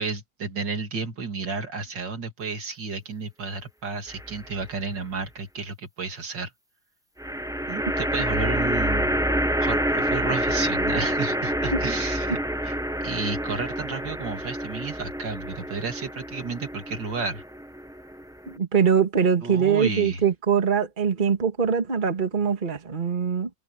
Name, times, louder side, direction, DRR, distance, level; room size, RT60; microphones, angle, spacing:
voice 1, 0.0-6.5 7.7-9.2 9.6-12.8 13.0-17.4 19.4-20.2, right 4 dB, 75° right, 3.2 m, -32 dB
sound 1, 4.1-4.7 7.2-18.6, equal, 5° right, 0.7 m, -28 dB
voice 2, 18.5-23.5, right 6 dB, 25° right, 1.8 m, -23 dB
omnidirectional pair, 2.0 m